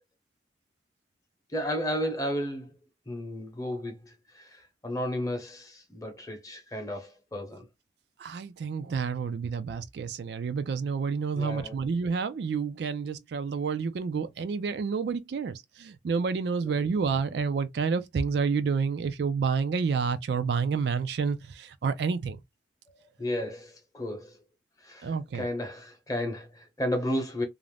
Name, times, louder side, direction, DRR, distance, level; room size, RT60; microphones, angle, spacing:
voice 1, 1.5-2.8 3.1-7.7 11.3-11.8 16.6-16.8 23.2-24.4 24.8-27.4, equal, 20° left, 0.8 m, -33 dB
voice 2, 8.2-22.4 25.0-25.4, right 5 dB, 65° right, 0.3 m, -29 dB
2.5 x 2.0 x 3.2 m
head